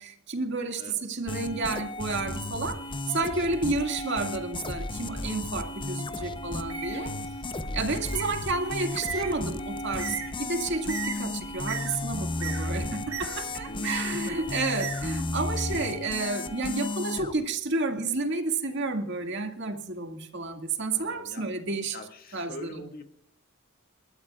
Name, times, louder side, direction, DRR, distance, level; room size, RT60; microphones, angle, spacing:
voice 1, 0.0-7.1 7.7-22.0 22.3-22.8, right 3 dB, 55° right, 2.1 m, -31 dB
sound 1, 1.3-17.3, left 2 dB, 25° left, 0.8 m, -34 dB
Bird, 6.5-15.6, right 6 dB, 75° right, 3.1 m, -40 dB
voice 2, 7.6-8.1 13.6-14.5 20.9-21.5 21.9-23.0, left 1 dB, 45° left, 2.1 m, -44 dB
29.0 x 12.5 x 2.4 m
head